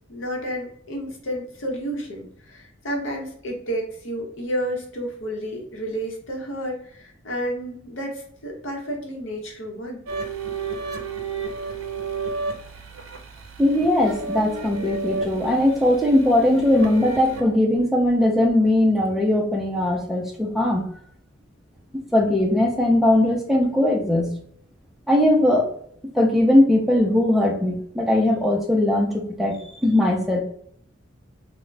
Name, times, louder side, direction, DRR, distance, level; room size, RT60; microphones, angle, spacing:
voice 1, 0.1-10.0, equal, 70° left, 0 dB, 0.8 m, -31 dB
sound 1, 10.1-17.4, right 4 dB, 80° right, 0.5 m, -32 dB
voice 2, 13.6-20.9 22.1-24.3 25.1-25.7 26.2-30.4, left 1 dB, ahead, -1 dB, 0.4 m, -19 dB
2.3 x 2.1 x 3.9 m, 0.64 s
head